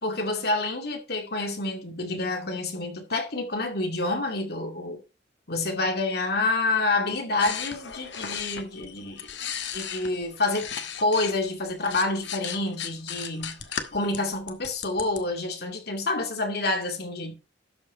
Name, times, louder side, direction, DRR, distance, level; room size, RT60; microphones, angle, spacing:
voice 1, 0.0-5.0 5.5-10.7 11.0-13.6 13.9-17.3, left 2 dB, 60° left, 2.2 m, -28 dB
sound 1, 7.4-11.3 11.7-15.2, left 8 dB, 80° left, 1.4 m, -36 dB
12.5 x 5.6 x 4.7 m
head